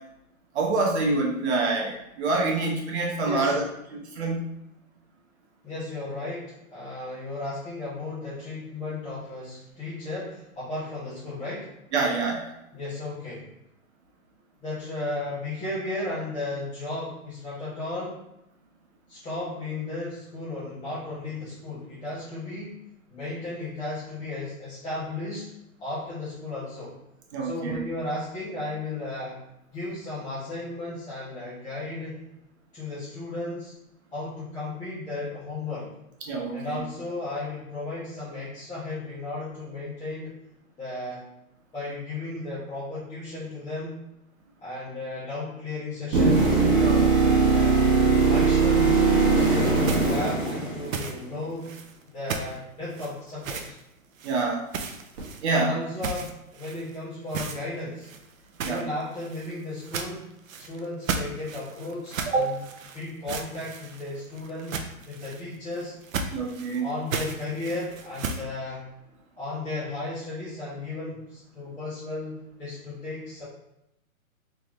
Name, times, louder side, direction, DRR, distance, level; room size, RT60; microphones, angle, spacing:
voice 1, 0.5-3.7 3.9-4.4 11.9-12.5 27.3-27.8 36.3-36.8 46.8-47.4 54.2-54.6 55.4-55.8 58.6-58.8 62.3-62.5 66.3-66.8, right 3 dB, 50° right, 0 dB, 1.0 m, -26 dB
voice 2, 3.2-3.6 5.6-11.7 12.7-13.4 14.6-18.2 19.1-22.8 23.1-25.5 25.8-26.9 27.4-29.4 29.7-32.3 32.7-33.7 34.1-35.9 36.5-40.3 40.8-41.2 41.7-44.0 44.6-46.6 47.2-47.8 48.3-51.7 52.1-53.6 55.5-58.1 58.6-60.2 60.6-62.6 62.9-65.9 66.8-68.9 69.4-73.4, left 2 dB, 10° left, -13 dB, 0.9 m, -34 dB
sound 1, 46.1-51.2 55.2-55.3, right 4 dB, 30° right, 1.1 m, -20 dB
sound 2, 49.3-51.2 51.6-52.0 52.3-52.6 52.9-53.8 54.2-54.4 54.7-55.6 56.0-57.0 57.3-57.6 58.0-68.4, right 5 dB, 65° right, 0.6 m, -35 dB
3.7 x 3.4 x 3.0 m, 0.84 s
hypercardioid pair, 150°, 43 cm